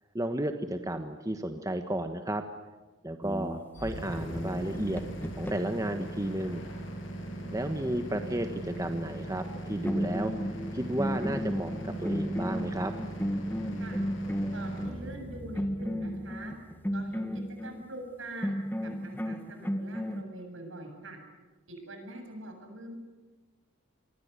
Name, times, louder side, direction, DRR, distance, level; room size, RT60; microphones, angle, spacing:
voice 1, 0.1-2.4 3.0-5.0 5.3-6.6 7.5-12.9, right 1 dB, 15° right, 6 dB, 1.3 m, -33 dB
sound 1, 3.2-5.9 9.4-9.6 9.9-15.0 15.6-17.8 18.4-20.2, equal, 10° left, 1.7 m, -34 dB
sound 2, 3.7-17.7, right 1 dB, 65° left, 7.6 m, -40 dB
voice 2, 7.2-7.5 13.8-14.0 14.5-16.5 16.9-18.5 18.8-21.2 21.7-23.0, right 1 dB, 70° right, 5 dB, 7.7 m, -44 dB
27.5 x 24.0 x 8.3 m, 1.2 s
head